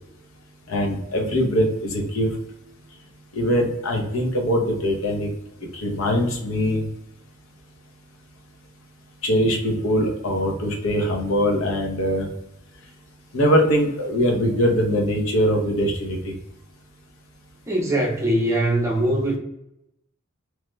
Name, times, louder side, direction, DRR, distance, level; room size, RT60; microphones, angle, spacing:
voice 1, 0.7-2.3 3.3-5.3 5.7-6.8 9.2-12.3 13.3-16.3, equal, 70° left, 1 dB, 0.7 m, -22 dB
voice 2, 17.7-19.4, right 1 dB, 15° right, -2 dB, 0.6 m, -21 dB
3.0 x 2.2 x 3.1 m, 0.82 s
head